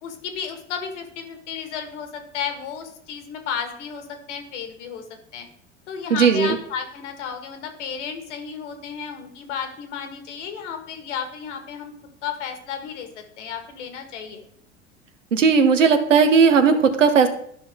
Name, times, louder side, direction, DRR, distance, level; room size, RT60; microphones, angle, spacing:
voice 1, 0.0-5.0 5.3-5.5 5.9-11.9 12.2-14.4, left 7 dB, 70° left, 6 dB, 1.7 m, -33 dB
voice 2, 6.1-6.6 15.3-17.3, right 5 dB, 85° right, 8 dB, 1.0 m, -16 dB
12.5 x 5.5 x 3.6 m, 0.66 s
hypercardioid pair, 80°, 37 cm